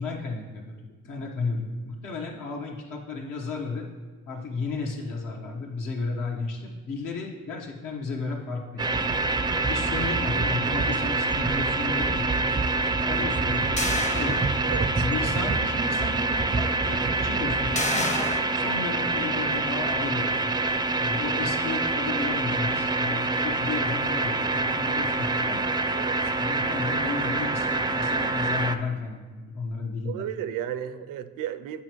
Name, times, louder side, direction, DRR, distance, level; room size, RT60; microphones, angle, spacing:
voice 1, 0.0-3.9 4.3-9.1 9.3-12.3 12.8-14.5 15.0-18.1 18.5-20.5 20.9-25.7 26.3-30.3, left 4 dB, 75° left, 0 dB, 1.2 m, -33 dB
sound 1, 8.8-28.8, right 3 dB, 15° right, 0.4 m, -26 dB
sound 2, 13.8-15.0 15.5-15.6 17.7-18.4, left 2 dB, 20° left, 0.7 m, -30 dB
voice 2, 14.7-15.1 25.9-26.2 30.1-31.8, right 10 dB, 80° right, 12 dB, 0.5 m, -33 dB
8.6 x 4.8 x 3.0 m, 1.4 s
supercardioid pair, 65°, 32 cm